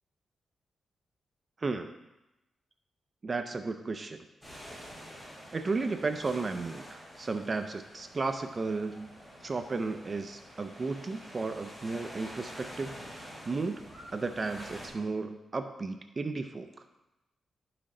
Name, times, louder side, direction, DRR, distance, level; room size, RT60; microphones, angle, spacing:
voice 1, 1.6-1.9 3.2-4.3 5.5-9.1 9.4-13.8 14.1-16.7, right 3 dB, 30° right, 7 dB, 0.5 m, -34 dB
sound 1, 4.4-14.9, equal, 15° left, 3.7 m, -48 dB
12.0 x 5.9 x 3.8 m, 0.98 s
wide cardioid pair, 130°, 0 cm